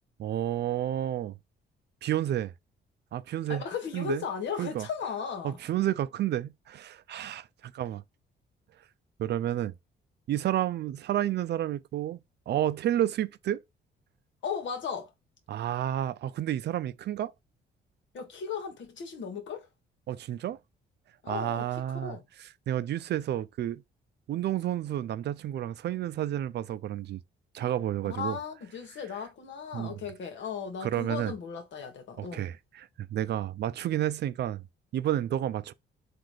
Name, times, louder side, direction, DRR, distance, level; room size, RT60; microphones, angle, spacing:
voice 1, 0.2-1.4 2.0-2.5 3.1-3.6 3.9-4.2 4.6-4.9 5.4-8.0 9.2-9.7 10.3-12.2 12.5-13.6 15.5-17.3 20.1-20.6 21.3-22.2 22.7-23.8 24.3-27.2 27.5-28.4 29.7-29.9 30.8-31.3 32.2-34.6 34.9-35.7, right 12 dB, 60° right, 0.4 m, -30 dB
voice 2, 3.5-5.6 14.4-15.1 18.1-19.7 21.2-22.2 28.0-32.5, left 6 dB, 70° left, 1.3 m, -36 dB
4.0 x 2.5 x 4.7 m
cardioid pair, 90°, 20 cm